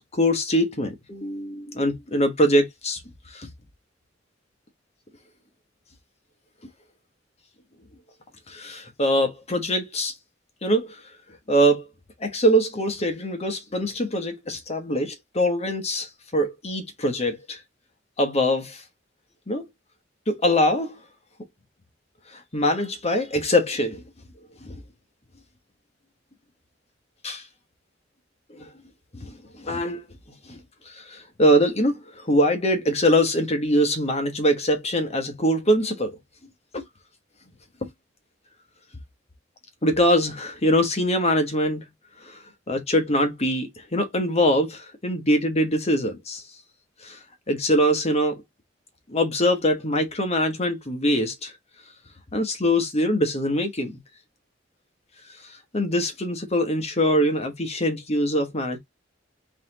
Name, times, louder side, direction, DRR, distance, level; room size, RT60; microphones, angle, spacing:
voice 1, 0.1-3.0 3.3-3.5 8.5-10.1 10.6-11.0 11.5-11.9 12.2-17.6 18.2-18.8 19.5-19.6 20.3-20.9 22.5-24.0 27.2-27.4 28.6-28.7 29.2-29.3 29.6-30.0 30.5-30.6 31.1-31.9 32.3-36.1 36.7-36.8 39.8-41.8 42.7-46.4 47.0-47.2 47.5-48.4 49.1-51.5 52.3-53.9 55.7-58.8, equal, 35° left, 1.2 m, -23 dB
4.1 x 3.8 x 2.9 m
head